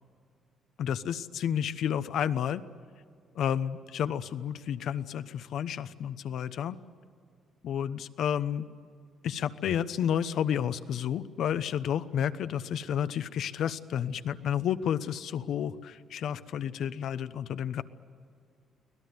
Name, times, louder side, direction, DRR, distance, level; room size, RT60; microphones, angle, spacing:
voice 1, 0.8-2.6 3.4-6.8 7.6-8.7 9.2-17.8, left 9 dB, 70° left, 13 dB, 0.9 m, -31 dB
24.5 x 18.0 x 9.5 m, 2.2 s
cardioid pair, 90°, 0 cm